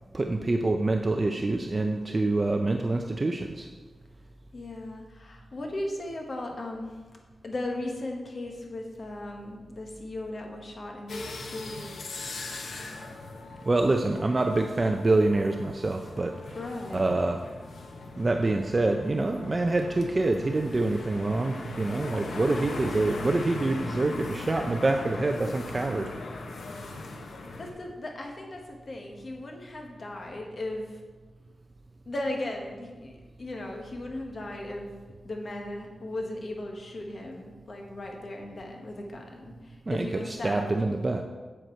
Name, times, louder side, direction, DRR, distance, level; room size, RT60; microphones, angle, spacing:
voice 1, 0.1-3.7 13.6-16.6 16.9-17.4 18.2-26.1 39.9-41.2, right 2 dB, 30° right, 4 dB, 0.4 m, -26 dB
voice 2, 4.5-7.0 7.4-11.9 16.5-17.1 26.8-27.1 27.6-31.0 32.1-34.9 35.2-40.7, left 1 dB, 45° left, 1 dB, 1.2 m, -37 dB
sound 1, 11.1-27.7, left 3 dB, 90° left, 1.1 m, -39 dB
7.8 x 7.7 x 4.5 m, 1.3 s
wide cardioid pair, 145°, 0 cm